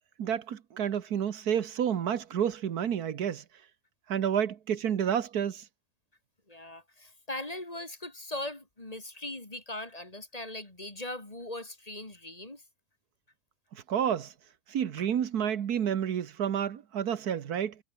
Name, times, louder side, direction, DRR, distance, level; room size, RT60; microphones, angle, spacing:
voice 1, 0.2-3.4 4.1-5.6 13.7-14.3 14.7-17.8, right 9 dB, 80° right, 1.7 m, -30 dB
voice 2, 6.5-12.6 15.0-15.1, left 1 dB, 25° left, 2.9 m, -40 dB
omnidirectional pair, 1.6 m